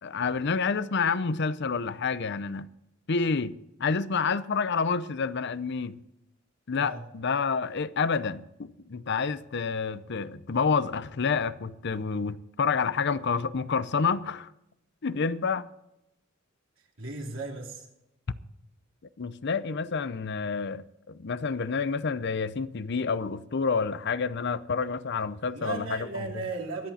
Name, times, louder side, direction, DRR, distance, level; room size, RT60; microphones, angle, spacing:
voice 1, 0.0-2.7 3.1-6.0 6.7-14.5 15.0-15.7 19.2-26.1 26.3-26.4, left 5 dB, 60° left, 0.6 m, -29 dB
voice 2, 6.7-7.1 17.0-17.9 25.5-26.9, right 3 dB, 80° right, 3.0 m, -36 dB
24.0 x 8.4 x 4.2 m
head